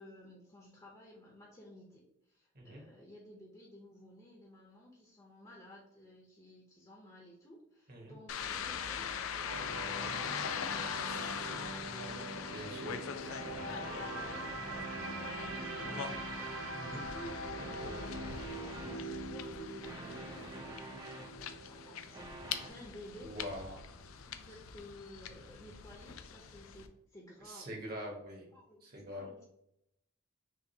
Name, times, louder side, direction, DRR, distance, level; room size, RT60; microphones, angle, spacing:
voice 1, 0.0-21.0 21.6-23.4 24.2-27.7 28.5-29.4, equal, 20° left, -3 dB, 0.7 m, -55 dB
sound 1, 8.3-26.9, left 7 dB, 75° left, 0.4 m, -42 dB
sound 2, 9.5-23.6 23.9-24.1, right 2 dB, 65° right, 0.6 m, -44 dB
voice 2, 12.5-13.0 16.7-17.0 23.2-23.8 27.4-28.5 28.8-29.3, equal, 45° right, 0 dB, 1.1 m, -44 dB
sound 3, 13.2-16.8 17.6-19.1 19.8-21.6 22.1-22.7, right 2 dB, 20° right, 0.5 m, -48 dB
5.9 x 2.4 x 2.8 m, 0.78 s
head